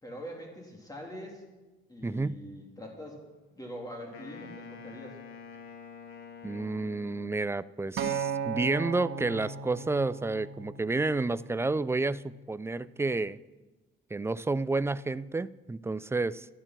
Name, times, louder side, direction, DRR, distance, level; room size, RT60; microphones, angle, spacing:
voice 1, 0.0-1.4 1.9-3.2 3.5-5.2, equal, 20° left, -1 dB, 3.0 m, -43 dB
voice 2, 2.0-2.4 6.4-13.4 14.1-16.5, right 3 dB, 15° right, 17 dB, 0.4 m, -30 dB
Wind instrument woodwind instrument, 4.1-7.6, left 5 dB, 85° left, 1.8 m, -47 dB
Acoustic guitar, 8.0-12.2 13.1-13.2, right 6 dB, 80° right, 1.2 m, -37 dB
12.5 x 11.5 x 6.0 m, 1.2 s
cardioid pair, 90°, 20 cm